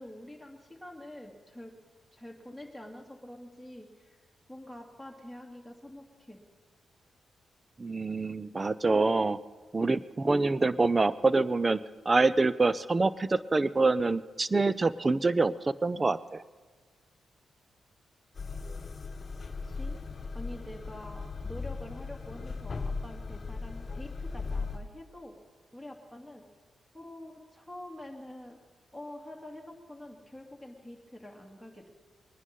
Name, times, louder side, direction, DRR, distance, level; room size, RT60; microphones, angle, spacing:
voice 1, 0.0-1.7 2.1-4.2 4.5-6.4 19.6-20.0 20.3-25.3 25.7-26.5 26.9-28.6 28.9-31.9, left 1 dB, 5° right, 2 dB, 2.7 m, -46 dB
voice 2, 7.8-9.4 9.7-11.8 12.1-16.4, right 3 dB, 35° right, 17 dB, 0.6 m, -26 dB
sound 1, 18.4-24.8, left 4 dB, 45° left, 1.1 m, -37 dB
21.5 x 10.0 x 5.4 m, 1.4 s
cardioid pair, 60°, 0 cm